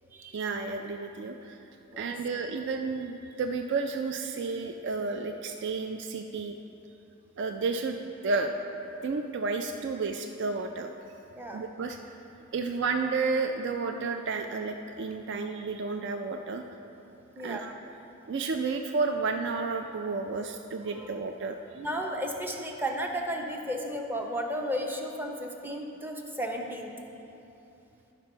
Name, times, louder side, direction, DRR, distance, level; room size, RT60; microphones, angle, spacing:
voice 1, 0.3-1.6 2.0-6.5 7.4-8.5 9.0-10.9 11.5-12.0 12.5-16.6 17.4-17.7 18.3-21.6, right 4 dB, 55° right, 5 dB, 0.4 m, -31 dB
voice 2, 17.3-17.7 20.8-21.1 21.8-26.9, equal, 10° right, 1 dB, 0.7 m, -34 dB
11.5 x 5.9 x 4.4 m, 2.9 s
head